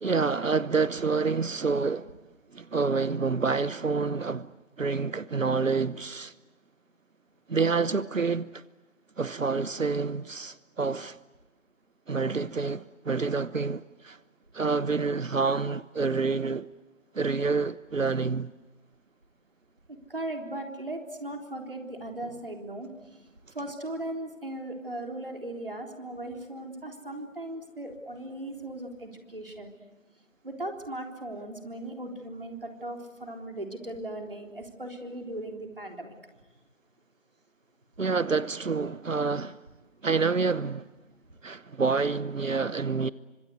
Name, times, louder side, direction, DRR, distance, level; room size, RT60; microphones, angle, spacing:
voice 1, 0.0-2.2 2.5-4.5 4.8-6.3 7.5-8.6 9.2-11.2 12.1-14.2 14.5-16.7 17.1-18.5 38.0-39.6 40.0-40.9 41.4-43.1, right 4 dB, 80° right, 1.0 m, -28 dB
voice 2, 19.9-22.9 23.5-29.7 30.4-36.1, right 1 dB, 45° right, 3.8 m, -38 dB
28.5 x 25.5 x 8.1 m
figure-of-eight pair, 180°, 38 cm